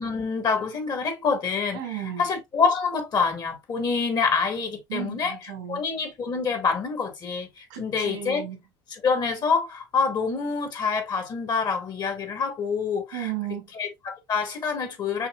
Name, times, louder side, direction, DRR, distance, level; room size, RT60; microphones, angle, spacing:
voice 1, 0.0-1.8 2.2-5.3 5.7-8.4 8.9-13.3 13.7-15.3, left 5 dB, 45° left, 1.7 m, -26 dB
voice 2, 1.7-2.3 4.9-5.8 7.7-8.6 13.1-13.7, right 11 dB, 90° right, 2.0 m, -34 dB
5.8 x 2.8 x 2.4 m
supercardioid pair, 90°, 10 cm